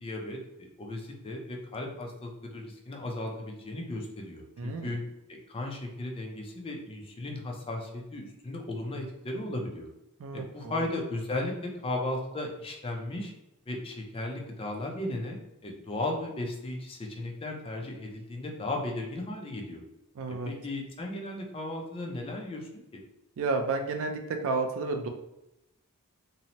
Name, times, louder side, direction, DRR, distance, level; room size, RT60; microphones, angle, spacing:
voice 1, 0.0-5.0 5.3-9.9 10.3-13.3 13.7-19.8 20.5-23.0, left 1 dB, 25° left, 1 dB, 0.4 m, -36 dB
voice 2, 4.6-4.9 10.2-10.8 20.1-20.5 23.4-25.1, right 3 dB, 60° right, 5 dB, 0.4 m, -31 dB
2.7 x 2.0 x 2.8 m, 0.88 s
head